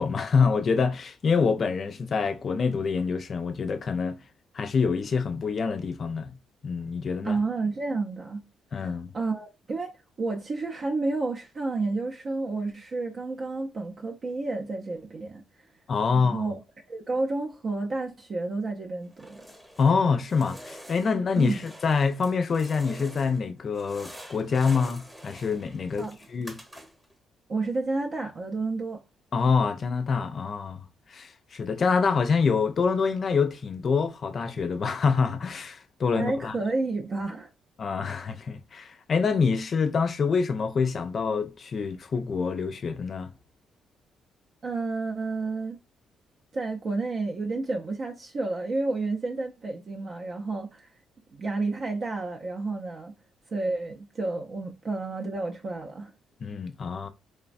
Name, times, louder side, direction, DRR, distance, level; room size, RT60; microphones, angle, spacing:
voice 1, 0.0-4.2 4.5-6.4 6.6-7.4 8.7-9.1 15.9-16.5 19.8-26.6 29.3-36.5 37.8-43.3 56.4-57.1, left 5 dB, 45° left, 0.3 m, -26 dB
voice 2, 7.2-8.4 8.8-9.9 10.2-15.4 16.1-16.6 16.9-19.5 21.4-21.6 26.0-26.2 27.5-29.0 36.1-37.5 44.6-45.8 46.5-50.9 51.3-53.1 53.5-56.1, right 3 dB, 45° right, 0.4 m, -30 dB
sound 1, 19.1-20.0 20.3-23.4 23.7-27.1, equal, 10° right, 0.8 m, -47 dB
3.1 x 2.1 x 2.5 m
cardioid pair, 90°, 0 cm